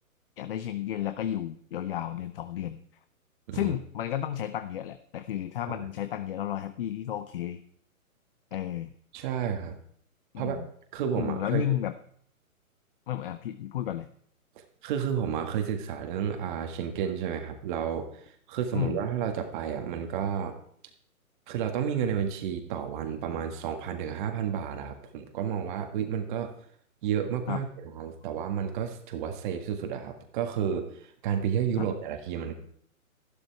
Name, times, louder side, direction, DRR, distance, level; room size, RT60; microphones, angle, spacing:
voice 1, 0.4-2.8 3.5-7.6 8.5-8.9 10.3-10.7 11.1-11.9 13.1-14.1 18.7-19.0 27.5-27.6 31.8-31.9, left 11 dB, 40° left, 10 dB, 0.8 m, -32 dB
voice 2, 9.1-9.8 10.4-10.6 10.9-11.8 14.8-20.5 21.5-26.5 27.0-32.5, right 8 dB, 35° right, 5 dB, 1.7 m, -31 dB
13.5 x 12.5 x 4.6 m, 0.63 s
hypercardioid pair, 145°, 42 cm